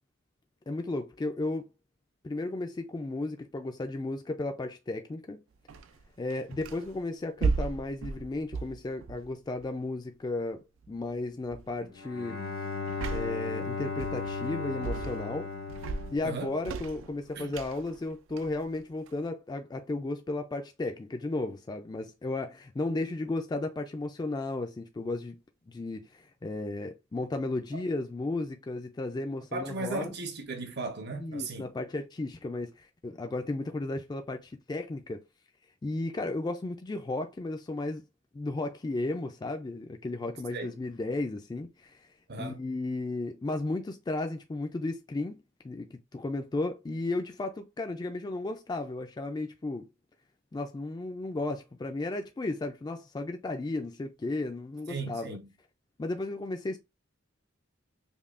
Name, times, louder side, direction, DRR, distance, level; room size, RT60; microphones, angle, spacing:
voice 1, 0.7-1.7 2.2-5.4 6.2-12.4 13.1-15.5 16.1-25.4 25.7-30.1 31.1-35.2 35.8-38.0 38.3-42.1 42.4-45.4 45.6-49.9 50.5-55.4 56.0-56.8, left 2 dB, 20° left, 0.3 m, -34 dB
sound 1, 5.7-7.0 7.4-9.8 10.8-11.1 11.5-11.8 12.9-13.5 14.0-14.5 14.8-15.4 15.7-19.3, right 4 dB, 70° right, 0.3 m, -36 dB
Bowed string instrument, 12.0-17.0, left 4 dB, 80° left, 1.0 m, -36 dB
voice 2, 16.2-16.5 17.4-17.5 29.5-31.6 40.5-40.7 42.3-42.6 54.9-55.4, right 3 dB, 55° right, 0.8 m, -36 dB
5.3 x 2.2 x 2.4 m
head